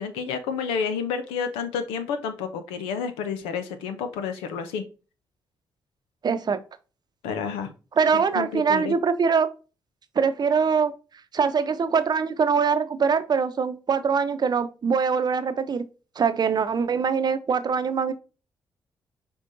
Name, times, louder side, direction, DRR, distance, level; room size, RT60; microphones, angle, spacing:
voice 1, 0.0-4.8 7.2-7.7 8.1-8.9, left 6 dB, 90° left, 0.7 m, -30 dB
voice 2, 6.2-6.6 8.0-9.5 10.2-10.9 11.3-15.8 16.2-18.1, right 6 dB, 50° right, 0.7 m, -23 dB
5.3 x 3.4 x 2.6 m
hypercardioid pair, 45°, 9 cm